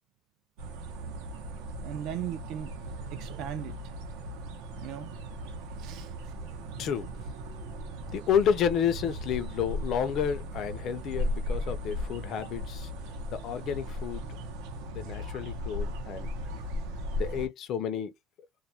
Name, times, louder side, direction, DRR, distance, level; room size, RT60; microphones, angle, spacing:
sound 1, 0.6-17.5, equal, 85° right, 0.7 m, -37 dB
voice 1, 1.8-2.7 3.1-3.8 4.8-5.1 5.8-6.3, right 10 dB, 55° right, 0.4 m, -38 dB
voice 2, 6.8-7.3 8.1-12.9 13.3-14.3 14.8-16.3 17.2-18.1, left 8 dB, 40° left, 0.4 m, -30 dB
2.3 x 2.1 x 2.7 m
cardioid pair, 180°, 0 cm